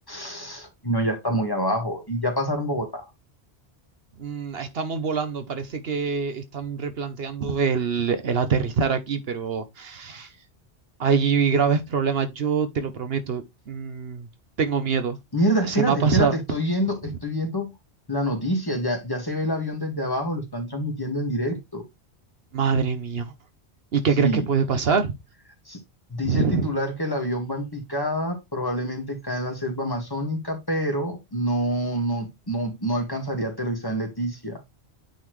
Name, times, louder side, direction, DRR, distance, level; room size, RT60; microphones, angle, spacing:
voice 1, 0.1-3.1 15.3-17.7 18.1-21.8 24.2-24.5 25.7-25.8 26.1-34.6, equal, 20° left, 1.8 m, -27 dB
voice 2, 4.2-10.3 11.0-14.3 14.6-15.2 15.6-16.4 17.1-17.2 22.5-23.3 23.9-25.1 26.2-26.7, right 6 dB, 65° right, 1.1 m, -24 dB
9.0 x 4.2 x 3.1 m
omnidirectional pair, 1.1 m